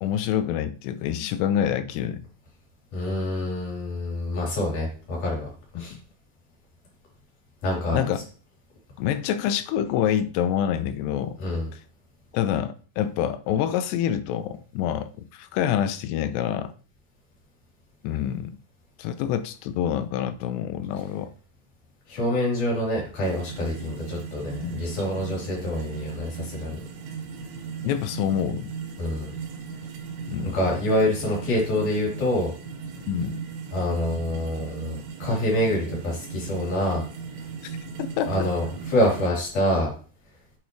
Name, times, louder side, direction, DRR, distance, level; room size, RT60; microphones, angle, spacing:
voice 1, 0.0-2.2 5.8-6.0 7.9-8.2 9.0-11.4 11.7-11.8 12.3-16.7 18.0-18.6 19.0-21.3 24.6-24.9 27.8-28.7 30.3-30.6 33.1-33.4 37.6-37.8 38.2-38.5, left 10 dB, 80° left, 2.6 m, -27 dB
voice 2, 2.9-5.5 5.8-5.9 7.6-8.0 11.4-11.7 22.1-26.8 29.0-29.3 30.5-32.5 33.7-37.0 38.3-39.9, left 1 dB, 45° left, 4.8 m, -26 dB
sound 1, 23.2-39.3, right 6 dB, 80° right, 3.1 m, -37 dB
9.0 x 6.5 x 3.2 m
omnidirectional pair, 5.1 m